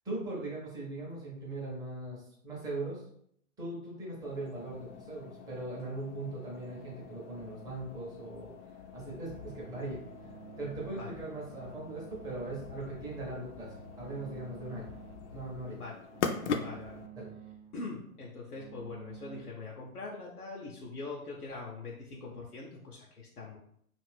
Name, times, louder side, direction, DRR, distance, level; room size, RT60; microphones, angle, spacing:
voice 1, 0.0-3.0 3.6-8.5 8.9-10.3 10.6-14.9 15.3-15.8 16.4-16.6 17.1-17.3, right 2 dB, 10° right, -5 dB, 0.6 m, -40 dB
sound 1, 4.2-17.1, left 6 dB, 55° left, 0.5 m, -42 dB
sound 2, 9.3-19.4, right 8 dB, 80° right, 0.5 m, -52 dB
voice 2, 16.5-17.0 17.7-23.6, left 3 dB, 90° left, -3 dB, 0.8 m, -43 dB
2.5 x 2.5 x 3.3 m, 0.68 s
figure-of-eight pair, 120°, 44 cm